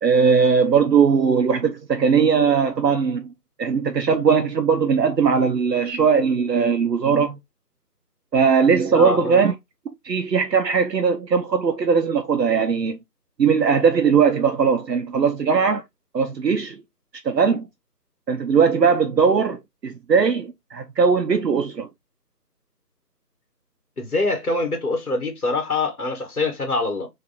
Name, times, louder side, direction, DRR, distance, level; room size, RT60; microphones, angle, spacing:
voice 1, 0.0-3.3 3.6-7.4 8.3-9.5 10.0-13.0 13.4-15.8 16.1-16.8 17.2-17.7 18.3-21.9, right 6 dB, 80° right, 0.7 m, -19 dB
voice 2, 8.9-9.4 24.0-27.1, left 3 dB, 60° left, 1.6 m, -24 dB
3.3 x 2.3 x 4.1 m
figure-of-eight pair, 170°, 49 cm